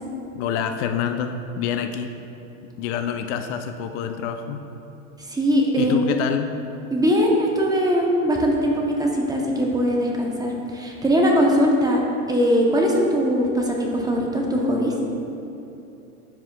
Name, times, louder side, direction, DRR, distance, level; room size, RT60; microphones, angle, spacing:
voice 1, 0.3-2.1 2.8-4.6 5.8-6.5, left 8 dB, 55° left, 7 dB, 0.5 m, -27 dB
voice 2, 5.3-6.0 6.9-14.9, equal, 10° right, -1 dB, 0.7 m, -21 dB
9.9 x 7.3 x 2.2 m, 2.9 s
supercardioid pair, 130°, 42 cm